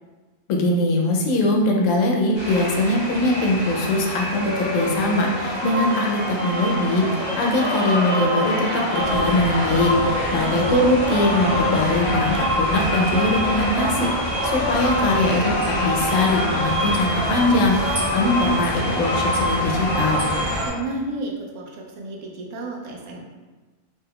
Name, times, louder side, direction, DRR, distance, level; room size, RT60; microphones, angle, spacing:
voice 1, 0.5-20.3, left 2 dB, 85° left, 0 dB, 1.0 m, -22 dB
sound 1, 2.3-20.7, equal, 25° left, 0.9 m, -25 dB
sound 2, 9.0-20.6, equal, 40° right, 1.1 m, -31 dB
voice 2, 10.2-10.6 20.6-23.3, right 2 dB, 80° right, 0 dB, 1.0 m, -32 dB
3.4 x 3.0 x 2.2 m, 1.3 s
omnidirectional pair, 1.3 m